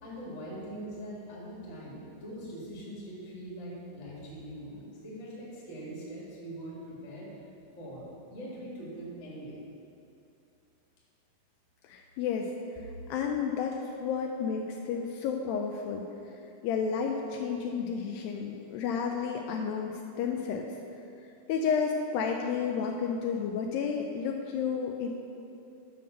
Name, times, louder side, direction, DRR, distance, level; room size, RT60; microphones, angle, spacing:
voice 1, 0.0-7.3 7.7-9.6, right 1 dB, 30° left, -6 dB, 1.2 m, -42 dB
voice 2, 11.8-12.5 13.1-16.0 16.6-20.7 21.5-25.1, left 6 dB, 80° left, 2 dB, 2.2 m, -31 dB
7.5 x 5.6 x 6.5 m, 2.7 s
omnidirectional pair, 4.4 m